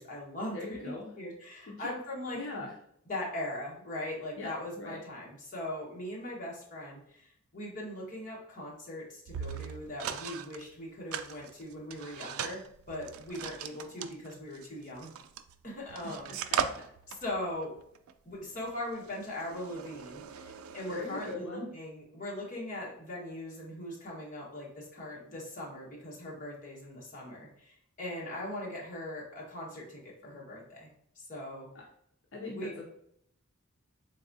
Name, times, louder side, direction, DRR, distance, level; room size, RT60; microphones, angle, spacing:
voice 1, 0.0-2.4 3.1-15.1 15.6-16.6 17.1-17.7 18.2-30.9 31.1-31.7 32.5-32.7, left 1 dB, 40° left, -4 dB, 1.3 m, -40 dB
voice 2, 0.5-1.1 1.7-1.8 2.3-2.7 4.4-5.0 16.3-16.9 20.9-21.7 31.7-31.8 32.3-32.8, left 3 dB, 65° left, -2 dB, 0.7 m, -41 dB
sound 1, 9.3-10.6 11.1-15.6 15.9-21.3, right 8 dB, 85° right, 0.3 m, -39 dB
3.8 x 3.6 x 2.7 m, 0.70 s
head